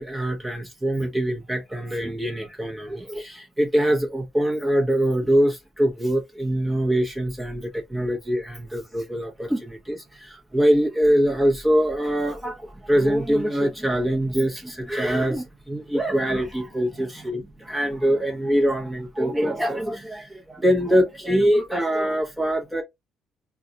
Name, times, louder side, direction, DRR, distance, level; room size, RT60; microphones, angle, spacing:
voice 1, 0.0-22.8, equal, 5° right, 1.1 m, -23 dB
2.5 x 2.4 x 3.9 m
cardioid pair, 110°, 0 cm